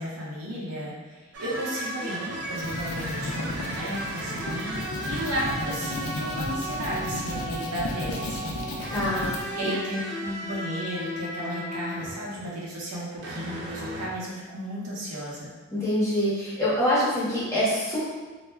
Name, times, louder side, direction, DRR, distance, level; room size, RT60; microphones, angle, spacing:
voice 1, 0.0-4.8 5.1-8.5 9.5-15.5, equal, 90° right, -5 dB, 0.7 m, -34 dB
sound 1, 1.3-12.5 12.9-14.1, equal, 50° right, 0.5 m, -35 dB
sound 2, 2.3-9.4, left 1 dB, 65° left, 0.4 m, -34 dB
voice 2, 8.9-9.7 15.7-18.1, equal, 10° left, -10 dB, 0.8 m, -25 dB
2.3 x 2.1 x 3.3 m, 1.4 s
head